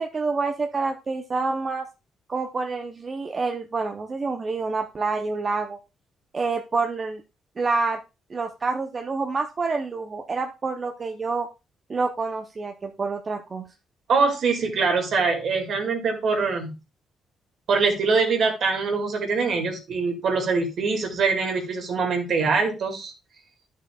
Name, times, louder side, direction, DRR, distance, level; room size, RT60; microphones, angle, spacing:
voice 1, 0.0-1.9 2.3-5.8 6.3-7.2 7.6-8.0 8.3-11.5 11.9-13.7, right 4 dB, 35° right, 4 dB, 0.7 m, -27 dB
voice 2, 14.1-16.7 17.7-23.1, right 4 dB, 60° right, 3 dB, 2.1 m, -23 dB
11.0 x 6.5 x 2.4 m, 0.26 s
cardioid pair, 90°, 0 cm